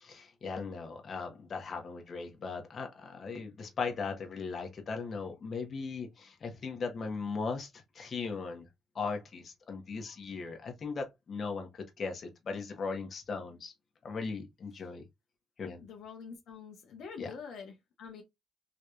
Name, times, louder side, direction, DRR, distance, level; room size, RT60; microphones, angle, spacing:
voice 1, 0.0-8.7 8.9-13.7 14.0-15.0 15.6-15.8 17.2-17.3, left 4 dB, 50° left, 1.3 m, -38 dB
voice 2, 15.8-18.2, left 6 dB, 75° left, 1.1 m, -46 dB
4.0 x 3.1 x 2.5 m
cardioid pair, 90°, 0 cm